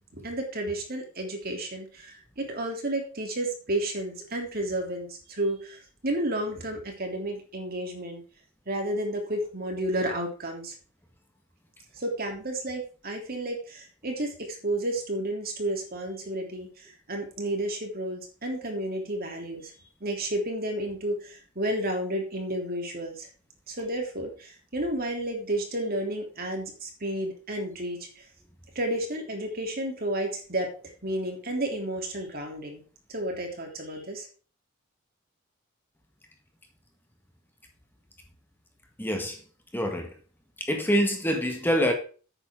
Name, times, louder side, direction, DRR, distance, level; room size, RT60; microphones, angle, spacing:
voice 1, 0.1-8.2 8.7-10.7 11.9-19.7 20.0-23.3 23.7-28.2 28.7-30.7 31.0-32.8 33.1-34.3, right 1 dB, 45° right, 3.2 m, -31 dB
voice 2, 39.0-39.4 39.7-40.1 40.6-41.9, equal, 10° left, 1.7 m, -25 dB
11.5 x 8.9 x 3.8 m
head